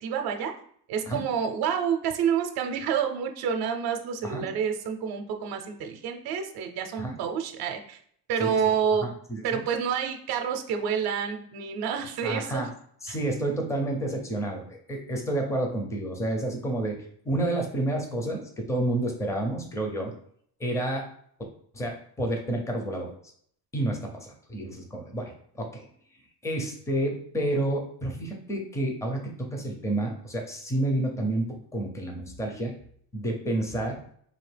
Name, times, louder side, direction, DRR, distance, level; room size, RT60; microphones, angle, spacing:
voice 1, 0.0-0.5 0.9-8.0 8.3-9.1 9.4-12.7 13.1-13.2, right 7 dB, 80° right, 4 dB, 0.6 m, -28 dB
voice 2, 9.0-9.6 12.2-12.7 13.0-20.1 20.6-21.1 21.7-23.1 23.7-25.9 26.4-32.7 33.1-34.0, right 1 dB, 10° left, 2 dB, 0.5 m, -30 dB
4.2 x 2.8 x 3.3 m, 0.64 s
cardioid pair, 170°, 38 cm